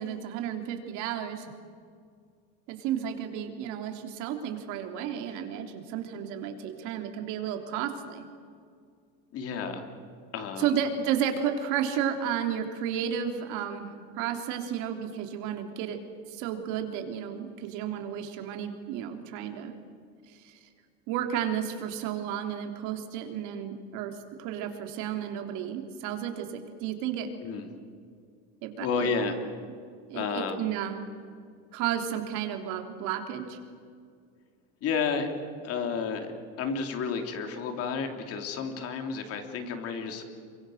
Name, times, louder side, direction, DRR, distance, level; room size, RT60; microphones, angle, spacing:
voice 1, 0.0-1.5 2.7-8.2 10.6-16.0 16.3-19.7 20.3-20.6 21.1-26.5 26.8-27.3 28.6-29.1 30.1-31.1 31.7-33.6, right 9 dB, 65° right, 5 dB, 3.2 m, -32 dB
voice 2, 9.3-9.8 10.3-10.8 27.4-27.7 28.8-29.4 30.1-30.6 34.8-35.3 35.6-36.3 36.6-40.2, left 5 dB, 45° left, 5 dB, 3.2 m, -31 dB
27.5 x 24.5 x 6.5 m, 2.2 s
cardioid pair, 145°, 33 cm